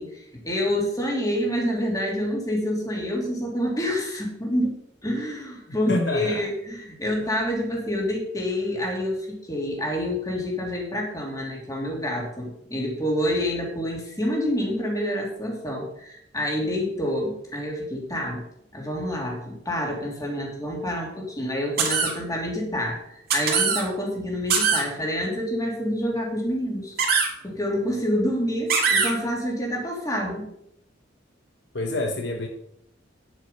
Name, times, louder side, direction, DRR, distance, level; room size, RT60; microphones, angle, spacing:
voice 1, 0.0-4.8 5.0-18.4 18.7-23.0 23.3-27.1 27.4-30.5, equal, 20° left, -1 dB, 2.9 m, -27 dB
voice 2, 5.9-6.5 31.7-32.5, left 2 dB, 65° left, 4 dB, 1.1 m, -27 dB
sound 1, 21.8-22.1 23.3-23.8 24.5-24.8 27.0-27.3 28.7-29.1, right 5 dB, 55° right, 2.5 m, -21 dB
9.8 x 7.4 x 5.6 m, 0.75 s
head